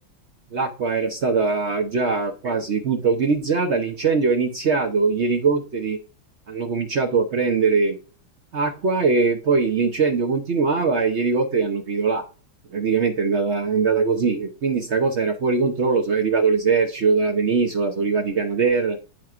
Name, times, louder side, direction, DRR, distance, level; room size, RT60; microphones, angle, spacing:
voice 1, 0.5-6.0 6.5-8.0 8.5-12.2 12.7-19.0, right 4 dB, 70° right, 4 dB, 0.6 m, -21 dB
11.5 x 4.5 x 2.4 m, 0.36 s
omnidirectional pair, 2.2 m